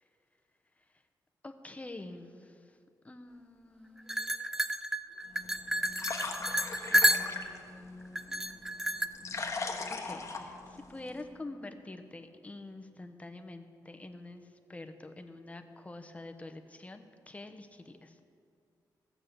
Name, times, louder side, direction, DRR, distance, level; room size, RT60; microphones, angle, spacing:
voice 1, 1.4-2.8 3.0-4.3 6.3-6.5 6.9-8.6 9.9-18.2, left 2 dB, 20° left, 7 dB, 0.9 m, -47 dB
sound 1, 4.1-7.6 8.1-9.1, equal, 5° right, 0.4 m, -30 dB
sound 2, 5.3-11.3, left 4 dB, 40° left, 1.3 m, -40 dB
15.5 x 7.5 x 6.7 m, 2.4 s
cardioid pair, 105°, 8 cm